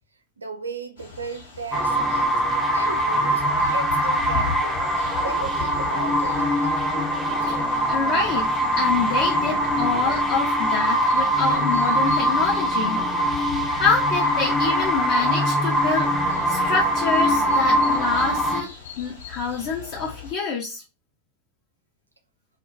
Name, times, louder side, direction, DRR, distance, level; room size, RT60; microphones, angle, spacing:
voice 1, 0.4-2.4 2.7-3.4 3.7-4.8 5.2-6.4, right 4 dB, 75° right, 0.4 m, -35 dB
sound 1, 1.0-20.3, left 7 dB, 70° left, 0.9 m, -40 dB
sound 2, 1.7-18.6, equal, ahead, 0.5 m, -22 dB
voice 2, 7.9-8.4 8.7-13.0 13.8-16.1 16.5-18.7 19.0-20.8, left 5 dB, 45° left, 0.6 m, -26 dB
2.3 x 2.2 x 3.5 m
figure-of-eight pair, 90°, 0 cm